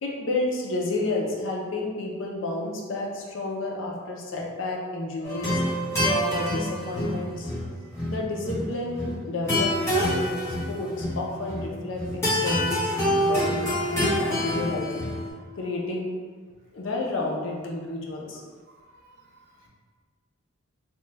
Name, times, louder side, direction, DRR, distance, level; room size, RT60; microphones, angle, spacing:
voice 1, 0.0-5.6 6.1-7.5 8.1-13.5 13.9-14.9 15.6-16.1 16.7-18.4, left 2 dB, 60° left, -1 dB, 0.5 m, -31 dB
sound 1, 5.2-15.3, equal, 15° left, 0.9 m, -27 dB
voice 2, 7.8-8.1 12.8-12.9 14.0-14.3 15.3-15.5 18.7-19.7, right 3 dB, 50° right, -4 dB, 0.7 m, -55 dB
2.9 x 2.2 x 3.2 m, 1.5 s
head